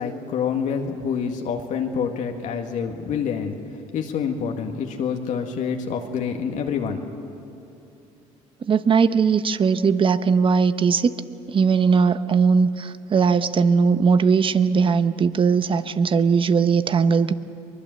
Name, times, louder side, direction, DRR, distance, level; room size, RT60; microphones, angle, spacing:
voice 1, 0.0-3.6 3.9-7.1, left 6 dB, 65° left, 3 dB, 1.9 m, -27 dB
voice 2, 8.6-11.1 11.5-17.3, right 5 dB, 40° right, 12 dB, 1.0 m, -19 dB
23.5 x 21.0 x 7.8 m, 2.8 s
supercardioid pair, 80°, 14 cm